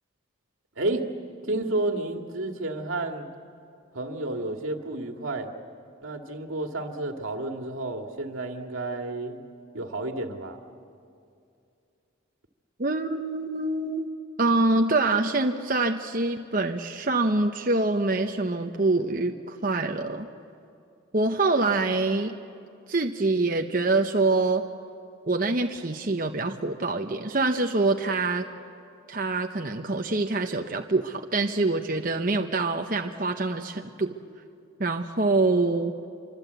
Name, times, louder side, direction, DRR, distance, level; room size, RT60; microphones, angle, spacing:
voice 1, 1.5-3.3 3.9-5.5 6.0-9.4 9.7-10.6, right 2 dB, 90° right, 3 dB, 2.2 m, -31 dB
voice 2, 12.8-14.1 14.4-20.3 21.1-22.4 22.9-24.6 25.3-28.5 29.1-34.1 34.8-35.9, right 3 dB, 45° right, 4 dB, 0.9 m, -25 dB
26.5 x 24.5 x 8.2 m, 2.5 s
head